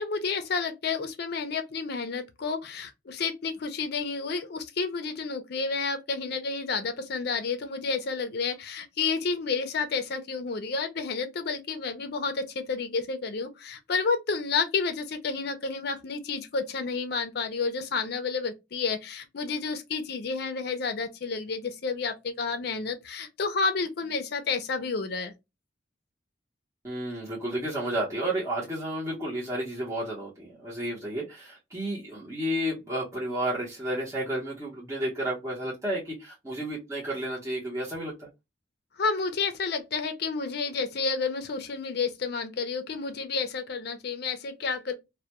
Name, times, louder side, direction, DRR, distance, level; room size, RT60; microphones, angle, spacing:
voice 1, 0.0-25.3 39.0-44.9, left 4 dB, 60° left, 0.5 m, -30 dB
voice 2, 26.8-38.3, right 1 dB, 15° right, 0.8 m, -32 dB
2.2 x 2.2 x 2.8 m
head